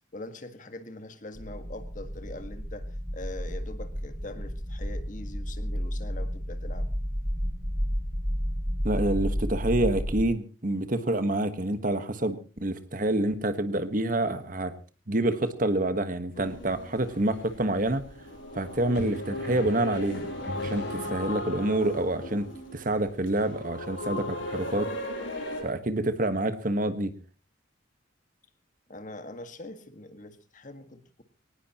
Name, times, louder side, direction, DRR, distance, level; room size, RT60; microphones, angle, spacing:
voice 1, 0.1-2.9 3.1-6.9 28.9-31.2, left 1 dB, 40° left, 9 dB, 1.7 m, -42 dB
sound 1, 1.4-10.3, equal, 15° right, 7.8 m, -32 dB
voice 2, 8.8-14.7 15.1-18.0 18.5-20.2 20.6-24.9 25.6-27.1, right 1 dB, 45° right, 10 dB, 1.4 m, -27 dB
sound 2, 16.3-25.6, left 1 dB, 80° left, 7.2 m, -37 dB
sound 3, 16.3-16.5 18.9-21.6, equal, 60° left, 6.5 m, -41 dB
22.5 x 19.0 x 3.0 m, 0.34 s
head